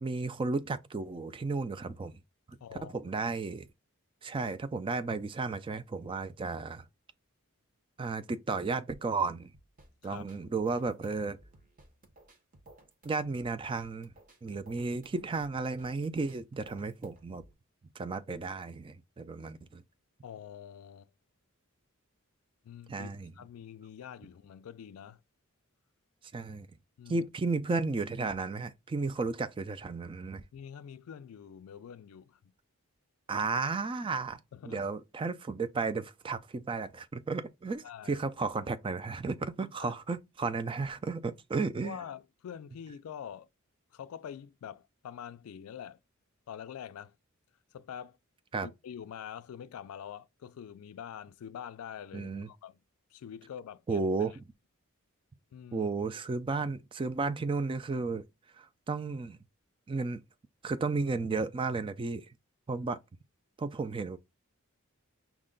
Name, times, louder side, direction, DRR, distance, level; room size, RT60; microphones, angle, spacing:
voice 1, 0.0-2.2 2.9-3.7 4.2-6.8 8.0-9.5 10.0-11.4 13.0-14.1 14.4-17.4 18.0-19.8 22.9-23.3 26.3-26.7 27.1-30.4 33.3-34.4 34.7-42.0 48.5-48.7 52.1-52.5 53.9-54.3 55.7-58.2 58.6-59.4 59.9-60.2 60.6-62.3 62.7-63.0 63.6-64.2, right 4 dB, 25° right, 0.3 m, -33 dB
voice 2, 2.6-2.9 10.0-10.2 20.2-21.1 22.6-23.1 23.3-25.2 27.0-27.3 30.5-32.5 34.5-34.9 37.8-38.3 39.8-39.9 41.8-43.5 43.9-46.0 46.5-47.1 47.7-48.2 48.6-52.8 53.1-54.1 55.5-55.9, left 8 dB, 75° left, 0.3 m, -45 dB
sound 1, 9.5-17.5, right 1 dB, 40° right, 0.9 m, -58 dB
5.9 x 2.2 x 3.7 m
head